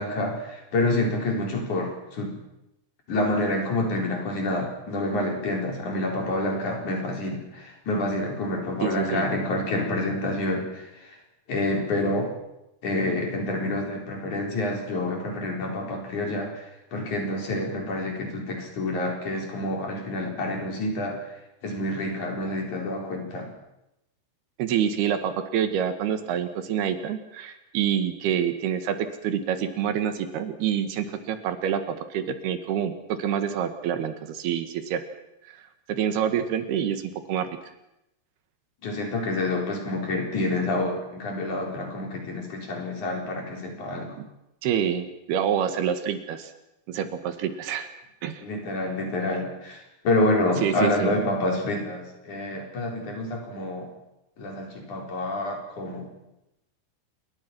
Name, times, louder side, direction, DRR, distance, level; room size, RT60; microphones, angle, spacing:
voice 1, 0.0-2.4 3.1-10.8 11.5-12.3 12.8-16.6 16.9-21.2 21.6-23.5 38.8-44.1 48.4-53.9 54.4-56.1, left 1 dB, 50° left, 1 dB, 5.6 m, -28 dB
voice 2, 8.8-9.3 24.6-35.0 35.5-35.6 35.9-37.0 37.3-37.5 44.2-44.3 44.6-46.5 46.9-47.9 48.2-48.4 50.6-51.1, right 9 dB, 75° right, 9 dB, 3.4 m, -27 dB
27.0 x 22.5 x 6.1 m, 0.89 s
omnidirectional pair, 4.7 m